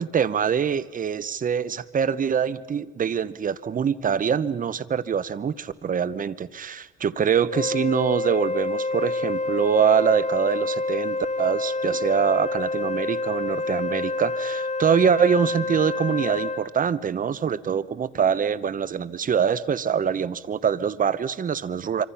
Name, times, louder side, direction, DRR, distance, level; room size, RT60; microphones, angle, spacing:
voice 1, 0.0-22.0, right 7 dB, 45° right, 17 dB, 1.0 m, -24 dB
Wind instrument woodwind instrument, 7.5-16.7, left 2 dB, 35° left, 1.6 m, -28 dB
26.0 x 25.0 x 5.8 m, 1.3 s
cardioid pair, 90°, 20 cm